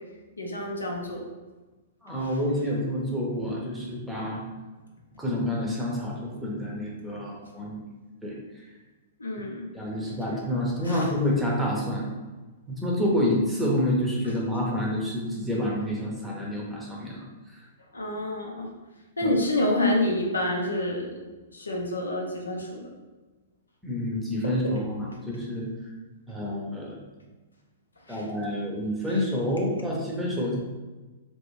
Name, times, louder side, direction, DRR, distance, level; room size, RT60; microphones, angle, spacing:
voice 1, 0.4-1.2 2.2-2.4 9.2-9.7 10.8-11.1 17.9-18.7 19.2-21.2 21.5-22.9 24.4-24.7 28.1-28.2, left 1 dB, 75° left, 0 dB, 0.6 m, -28 dB
voice 2, 2.0-4.4 5.2-7.9 8.2-8.3 9.7-12.1 12.7-17.6 23.8-25.7 26.3-27.0 28.1-30.6, left 1 dB, 5° right, -4 dB, 0.8 m, -28 dB
3.0 x 2.6 x 2.9 m, 1.2 s
figure-of-eight pair, 105°, 0 cm